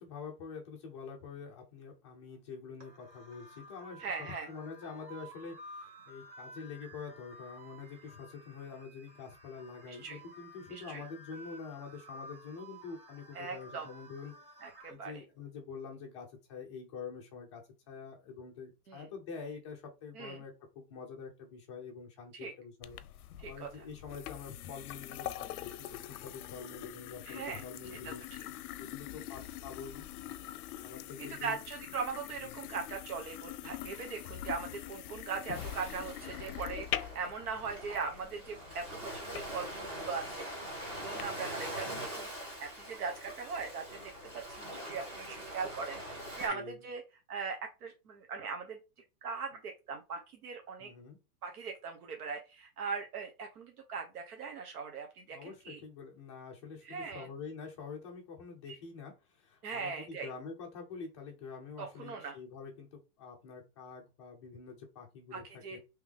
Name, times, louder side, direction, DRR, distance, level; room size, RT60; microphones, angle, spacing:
voice 1, 0.0-14.3 14.9-23.0 23.4-28.2 28.8-30.1 30.8-31.6 32.4-32.6 46.5-46.8 50.8-51.2 55.3-65.4 65.7-65.8, left 5 dB, 20° left, 1 dB, 0.5 m, -46 dB
sound 1, 2.8-14.9, equal, 35° right, 1.4 m, -53 dB
voice 2, 4.0-4.5 9.9-10.2 10.7-11.0 13.3-13.9 14.6-15.1 18.9-19.1 20.2-20.4 22.3-22.5 23.4-23.7 27.3-27.6 28.0-28.1 31.4-40.4 40.8-42.3 42.6-44.0 44.3-46.0 46.4-47.0 47.3-48.8 49.2-50.9 51.4-55.8 56.8-57.3 59.6-60.3 61.8-62.3 65.3-65.8, right 5 dB, 70° right, 3 dB, 1.0 m, -40 dB
sound 2, 22.8-41.2, left 12 dB, 70° left, 0.6 m, -44 dB
Ocean, 35.5-46.5, equal, 10° right, 1.2 m, -43 dB
3.5 x 3.0 x 3.6 m, 0.28 s
supercardioid pair, 175°, 46 cm